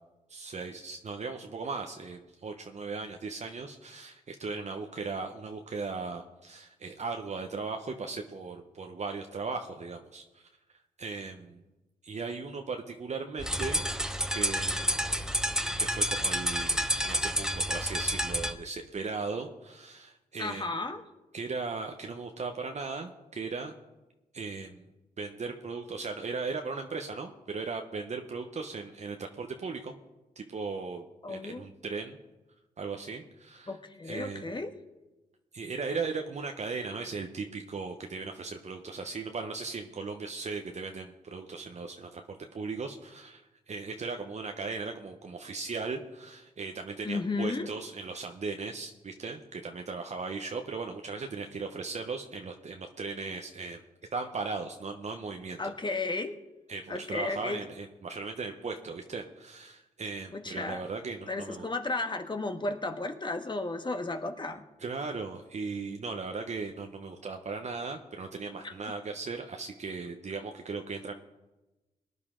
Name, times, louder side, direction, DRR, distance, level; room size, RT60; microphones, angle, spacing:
voice 1, 0.3-10.4 11.0-11.6 12.0-13.8 14.3-14.9 15.8-20.7 21.3-23.7 24.3-24.8 25.2-29.9 30.4-32.2 32.8-33.8 34.0-34.6 35.5-43.4 43.7-53.8 54.1-55.6 56.7-61.7 64.8-71.1, right 4 dB, 50° right, 4 dB, 1.0 m, -37 dB
sound 1, 13.4-18.6, equal, 5° right, 0.8 m, -29 dB
voice 2, 20.4-21.0 31.2-31.7 33.7-34.7 47.0-47.7 55.6-56.4 56.9-57.6 60.3-60.8 61.3-64.6 68.6-68.7, left 3 dB, 30° left, 7 dB, 1.4 m, -33 dB
18.5 x 9.7 x 3.8 m, 1.1 s
supercardioid pair, 55°, 16 cm